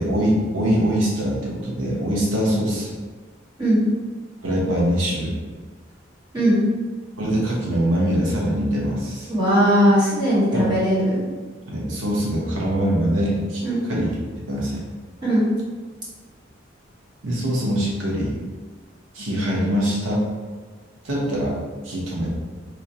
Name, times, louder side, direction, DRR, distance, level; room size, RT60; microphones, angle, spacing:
voice 1, 0.0-2.9 4.4-5.3 7.2-9.3 10.5-10.7 11.7-14.1 14.5-14.8 17.2-18.4 19.1-20.2 21.0-21.6 21.8-22.3, equal, 85° right, -4 dB, 0.8 m, -23 dB
voice 2, 9.3-11.2 13.6-13.8 15.2-15.4, equal, 25° right, -10 dB, 1.5 m, -19 dB
4.4 x 2.6 x 2.7 m, 1.4 s
head